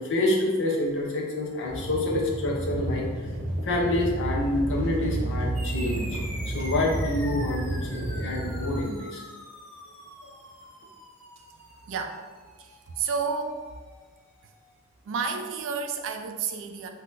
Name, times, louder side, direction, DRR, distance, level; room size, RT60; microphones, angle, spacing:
voice 1, 0.0-3.0 3.6-6.2 6.5-9.2, left 1 dB, 55° left, -1 dB, 0.6 m, -27 dB
sound 1, 1.7-8.8, right 1 dB, 40° right, 0.9 m, -31 dB
sound 2, 5.5-14.4, equal, ahead, 1.3 m, -44 dB
voice 2, 11.8-12.2 12.6-13.6 14.4-14.5 15.0-16.9, right 5 dB, 60° right, 5 dB, 0.3 m, -31 dB
3.7 x 2.8 x 2.5 m, 1.4 s
head